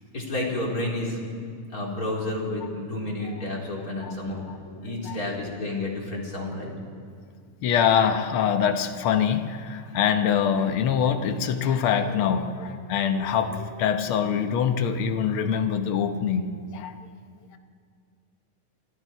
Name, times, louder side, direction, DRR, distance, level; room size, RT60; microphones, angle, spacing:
voice 1, 0.1-1.2 1.7-4.4 4.8-6.7, left 2 dB, 25° left, -3 dB, 4.3 m, -30 dB
voice 2, 4.9-5.5 7.6-17.0, left 7 dB, 75° left, 7 dB, 1.2 m, -24 dB
29.0 x 26.0 x 4.6 m, 2.2 s
omnidirectional pair, 4.0 m